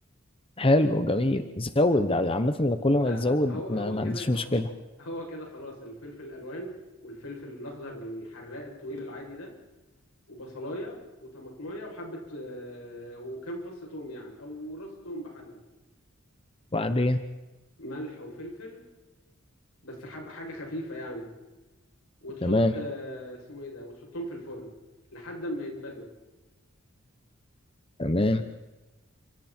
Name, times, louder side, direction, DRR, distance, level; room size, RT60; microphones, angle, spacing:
voice 1, 0.6-4.7 16.7-17.2 22.4-22.8 28.0-28.4, left 1 dB, 25° left, 9 dB, 1.0 m, -24 dB
voice 2, 3.0-4.6 5.0-6.7 7.0-9.5 10.3-15.6 17.8-18.8 19.8-21.3 22.2-24.7 25.1-26.1, equal, 90° left, -1 dB, 7.6 m, -39 dB
30.0 x 27.0 x 4.5 m, 1.1 s
head